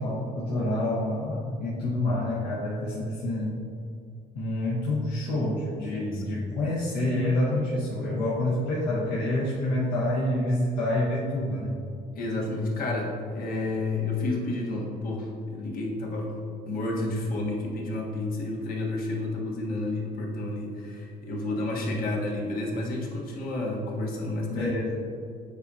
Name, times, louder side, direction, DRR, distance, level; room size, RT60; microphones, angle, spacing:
voice 1, 0.0-3.6 4.3-11.8 24.5-25.0, left 1 dB, 75° left, -7 dB, 1.3 m, -27 dB
voice 2, 5.9-6.2 12.1-16.3 16.6-24.7, left 2 dB, 60° left, -2 dB, 1.4 m, -30 dB
8.9 x 4.8 x 2.8 m, 2.4 s
cardioid pair, 110°, 17 cm